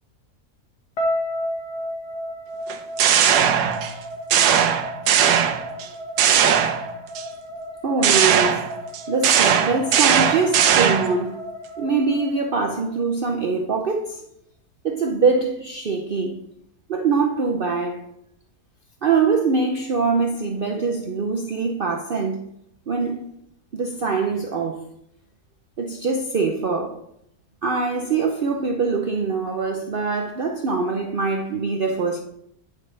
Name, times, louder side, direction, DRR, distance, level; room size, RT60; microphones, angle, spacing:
sound 1, 1.0-13.1, equal, 85° left, 1.9 m, -33 dB
sound 2, 2.7-4.0 4.3-5.9 6.2-7.2 8.0-11.2, right 8 dB, 85° right, 1.3 m, -19 dB
voice 1, 7.8-8.7 9.1-11.4 11.8-14.2 14.8-16.4 16.9-18.0 19.0-22.4 22.9-23.2 23.7-24.8 25.8-27.0 27.6-32.2, right 4 dB, 65° right, 0.5 m, -23 dB
9.6 x 5.3 x 3.2 m
omnidirectional pair, 1.7 m